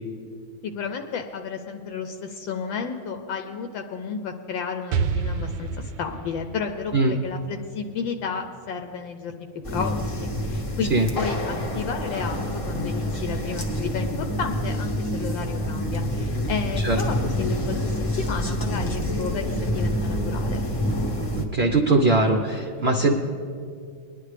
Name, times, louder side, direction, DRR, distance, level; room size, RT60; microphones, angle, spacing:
voice 1, 0.6-9.5 9.7-17.8 18.2-20.6, left 6 dB, 75° left, 6 dB, 1.3 m, -32 dB
Explosion, 4.9-8.7, right 5 dB, 70° right, 1.1 m, -30 dB
sound 1, 9.6-21.4, equal, 25° left, 0.7 m, -27 dB
voice 2, 21.4-23.1, right 2 dB, 55° right, 2 dB, 0.7 m, -20 dB
21.5 x 10.0 x 3.3 m, 2.3 s
omnidirectional pair, 2.2 m